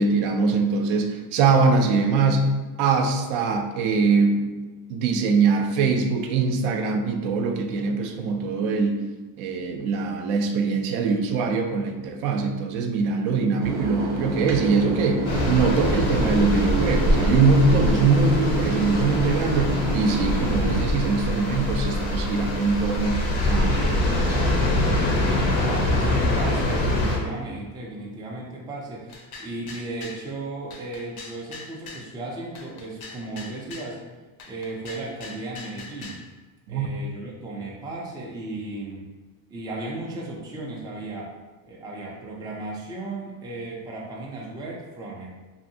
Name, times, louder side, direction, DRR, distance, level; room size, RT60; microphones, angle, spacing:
voice 1, 0.0-2.5 2.8-4.4 4.9-9.0 9.4-23.2 23.5-24.6 36.7-36.9, right 4 dB, 75° right, 4 dB, 0.6 m, -22 dB
sound 1, 13.6-20.8, right 1 dB, 35° right, 0.7 m, -29 dB
sound 2, 15.2-27.2, left 1 dB, 80° left, 0.9 m, -24 dB
voice 2, 25.5-34.0 34.5-36.2 36.7-39.1 39.5-41.3 41.6-45.3, right 2 dB, 10° right, -3 dB, 0.3 m, -35 dB
sound 3, 29.1-30.2 30.7-32.1 32.6-33.9 34.4-36.2, left 3 dB, 50° left, 0.6 m, -41 dB
2.7 x 2.5 x 2.7 m, 1.2 s
cardioid pair, 110°, 48 cm